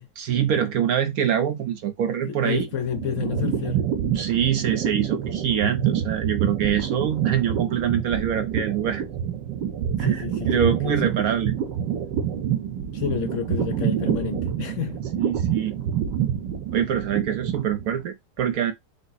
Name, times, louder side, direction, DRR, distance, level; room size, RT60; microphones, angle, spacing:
voice 1, 0.2-2.7 4.1-9.0 10.0-11.5 15.2-15.8 16.7-18.7, right 9 dB, 65° right, 1.0 m, -24 dB
voice 2, 2.3-3.8 10.0-11.2 12.9-15.0, left 9 dB, 75° left, 0.7 m, -30 dB
sound 1, 2.5-18.0, right 9 dB, 85° right, 1.4 m, -27 dB
5.1 x 2.0 x 4.0 m
omnidirectional pair, 1.9 m